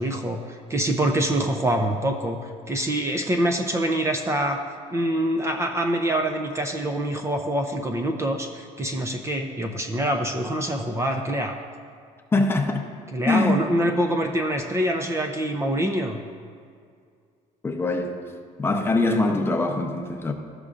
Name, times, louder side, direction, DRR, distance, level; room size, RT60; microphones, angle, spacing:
voice 1, 0.0-2.4 2.7-4.6 4.9-11.6 13.1-16.2, right 1 dB, 20° right, 4 dB, 0.5 m, -25 dB
voice 2, 12.3-12.8 13.3-13.7 17.6-18.2 18.6-20.3, left 2 dB, 15° left, 4 dB, 0.7 m, -23 dB
13.5 x 6.5 x 2.5 m, 2.3 s
cardioid pair, 130°, 14 cm